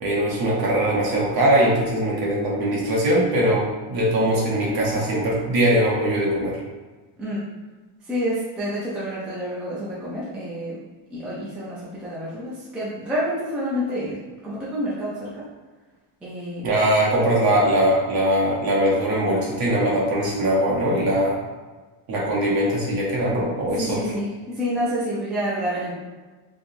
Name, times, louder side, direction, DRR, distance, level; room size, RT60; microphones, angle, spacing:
voice 1, 0.0-6.6 16.6-21.4 22.1-24.0, right 1 dB, 50° right, -5 dB, 1.0 m, -21 dB
voice 2, 8.1-10.8 11.1-14.2 14.4-15.4 16.2-16.7 23.8-25.9, equal, ahead, -9 dB, 0.3 m, -28 dB
3.5 x 2.8 x 2.5 m, 1.3 s
cardioid pair, 175°, 48 cm